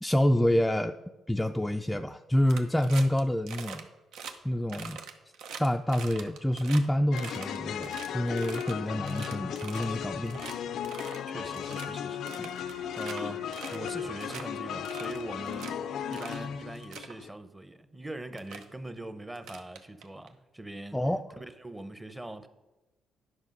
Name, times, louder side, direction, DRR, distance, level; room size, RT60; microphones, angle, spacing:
voice 1, 0.0-1.0 1.3-3.9 4.4-5.0 5.6-10.4 20.9-21.2, left 1 dB, 10° left, 0.3 m, -27 dB
sound 1, 2.5-3.2 3.5-3.8 4.1-4.3 4.7-6.8 7.1-8.7 9.1-10.0 10.3-10.5 10.8-11.2 11.5-11.9 12.3-13.2 13.5-13.9 14.2-14.4 14.8-15.7 16.1-16.4 16.7-17.1 17.9-18.0 18.4-18.6 19.3-20.3, right 6 dB, 90° right, 0.8 m, -43 dB
sound 2, 7.1-17.3, left 8 dB, 75° left, 0.4 m, -36 dB
voice 2, 11.3-21.0 21.3-22.5, right 1 dB, 15° right, 0.7 m, -42 dB
9.8 x 5.8 x 5.3 m
cardioid pair, 90°, 0 cm